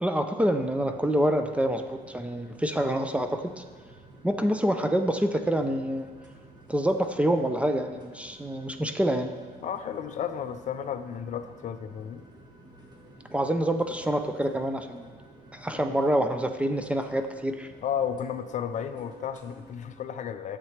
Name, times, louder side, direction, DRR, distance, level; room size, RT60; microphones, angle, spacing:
voice 1, 0.0-3.6 4.2-6.1 6.7-9.3 13.3-15.1 15.5-17.7, right 1 dB, 5° right, 7 dB, 0.4 m, -26 dB
sound 1, 0.6-20.0, right 1 dB, 25° right, 1.3 m, -51 dB
voice 2, 9.6-12.2 15.7-15.8 17.8-20.6, left 8 dB, 45° left, 10 dB, 0.4 m, -33 dB
10.5 x 7.4 x 3.3 m, 1.5 s
cardioid pair, 110°, 17 cm